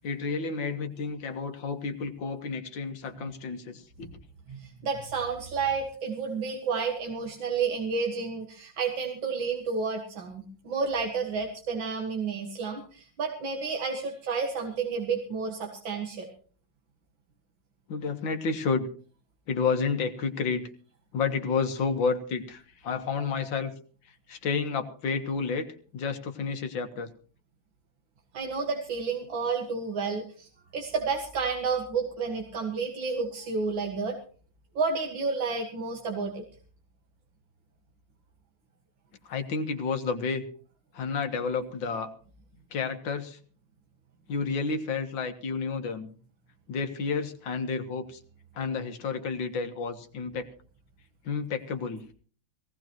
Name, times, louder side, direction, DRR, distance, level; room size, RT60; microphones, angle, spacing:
voice 1, 0.0-4.1 17.9-18.9 19.5-20.7 21.1-23.7 24.3-25.7 25.9-27.1 39.2-40.4 40.9-42.1 42.7-43.4 44.3-46.1 46.7-48.2 48.6-50.5 51.2-52.0, left 5 dB, 90° left, 6 dB, 2.2 m, -30 dB
voice 2, 4.5-16.3 28.3-34.2 34.8-36.4, right 5 dB, 90° right, 2 dB, 2.5 m, -31 dB
19.5 x 17.5 x 3.0 m, 0.42 s
omnidirectional pair, 2.0 m